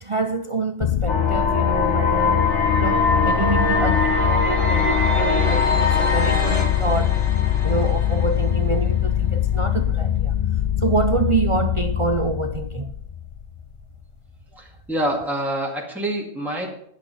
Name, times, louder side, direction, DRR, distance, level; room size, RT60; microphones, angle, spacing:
voice 1, 0.0-2.5 2.8-7.2 7.6-10.4 10.8-12.9, right 4 dB, 45° right, 0.4 m, -26 dB
sound 1, 0.8-13.7, left 11 dB, 55° left, 0.4 m, -23 dB
sound 2, 1.1-9.0, left 3 dB, 75° left, 1.9 m, -23 dB
voice 2, 14.6-16.7, right 1 dB, ahead, 2.0 m, -26 dB
10.5 x 8.4 x 5.6 m
omnidirectional pair, 1.2 m